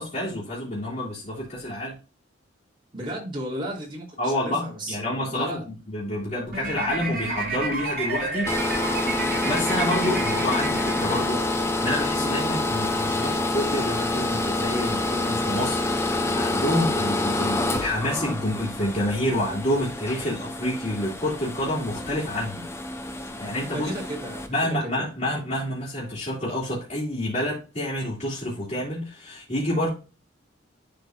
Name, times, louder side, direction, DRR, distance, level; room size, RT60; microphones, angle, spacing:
voice 1, 0.0-1.9 4.2-8.6 9.4-22.6 23.4-23.9 24.5-29.9, left 1 dB, 40° left, -8 dB, 2.6 m, -28 dB
voice 2, 2.9-5.6 23.7-25.0, right 1 dB, 25° right, -4 dB, 3.1 m, -34 dB
sound 1, 6.5-11.7, right 3 dB, 55° right, 3.7 m, -31 dB
sound 2, 8.5-24.5, left 2 dB, 15° left, 0.8 m, -27 dB
11.0 x 4.5 x 2.5 m, 0.33 s
head